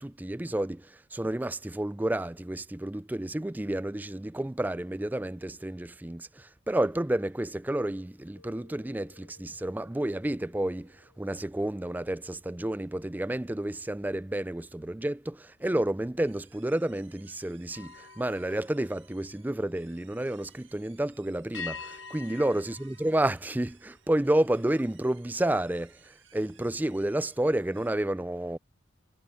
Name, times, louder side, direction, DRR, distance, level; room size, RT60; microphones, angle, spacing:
voice 1, 0.0-28.6, right 1 dB, 10° right, 0.4 m, -30 dB
sound 1, 8.3-13.9 14.4-14.7 17.6-19.8 21.5-24.1, left 5 dB, 75° left, 1.3 m, -48 dB
sound 2, 16.2-27.9, right 9 dB, 90° right, 2.0 m, -61 dB
head